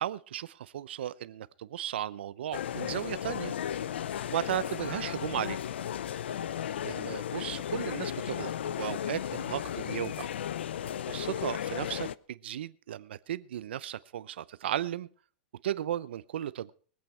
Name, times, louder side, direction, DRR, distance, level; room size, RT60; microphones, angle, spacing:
voice 1, 0.0-3.5 4.3-5.6 6.8-8.5 8.8-10.3 11.1-15.1 15.6-16.7, right 11 dB, 80° right, 17 dB, 0.7 m, -35 dB
sound 1, 2.5-12.2, left 10 dB, 90° left, 0.5 m, -35 dB
22.5 x 8.5 x 4.5 m, 0.41 s
supercardioid pair, 160°, 6 cm